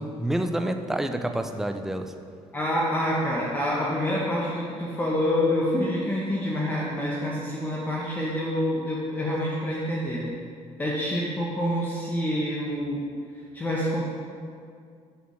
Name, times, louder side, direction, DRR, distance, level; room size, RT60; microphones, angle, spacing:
voice 1, 0.0-2.1, right 1 dB, 5° right, 6 dB, 0.5 m, -28 dB
voice 2, 2.5-10.3 10.8-13.0 13.5-14.0, left 1 dB, 15° left, -5 dB, 1.0 m, -27 dB
8.0 x 4.9 x 6.5 m, 2.3 s
cardioid pair, 145°, 12 cm